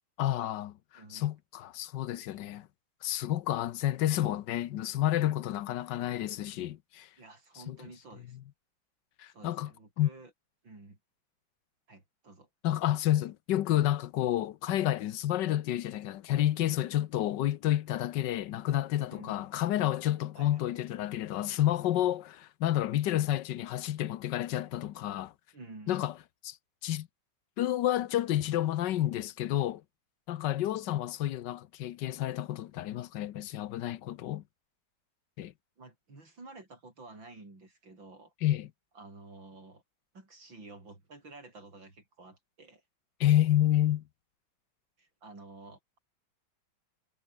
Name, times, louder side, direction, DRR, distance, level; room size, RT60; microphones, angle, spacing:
voice 1, 0.2-0.8 1.1-2.7 3.0-7.1 7.7-7.8 9.2-9.7 10.0-10.1 12.6-25.3 25.9-26.1 26.4-26.6 26.8-27.1 27.6-29.8 30.3-34.4 35.4-35.5 38.4-38.7 43.2-44.0, left 13 dB, 65° left, 1.3 m, -30 dB
voice 2, 1.0-1.3 7.2-8.4 9.3-10.3 10.6-11.0 11.9-12.5 19.1-19.5 20.4-20.6 25.5-26.0 35.8-38.3 39.0-39.8 40.1-42.8 45.0-46.0, right 2 dB, 65° right, 7.1 m, -51 dB
omnidirectional pair, 2.2 m